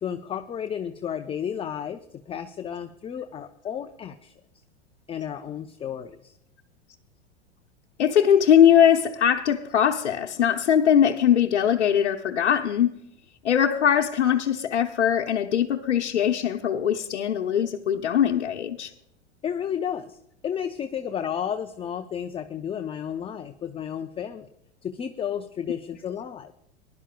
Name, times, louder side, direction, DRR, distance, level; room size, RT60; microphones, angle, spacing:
voice 1, 0.0-4.3 5.1-6.3 19.4-20.2 20.4-24.5 24.8-26.5, left 8 dB, 15° left, 0.5 m, -32 dB
voice 2, 8.0-13.0 13.4-18.9, left 9 dB, 85° left, 0.8 m, -21 dB
20.0 x 11.5 x 2.3 m
hypercardioid pair, 105°, 34 cm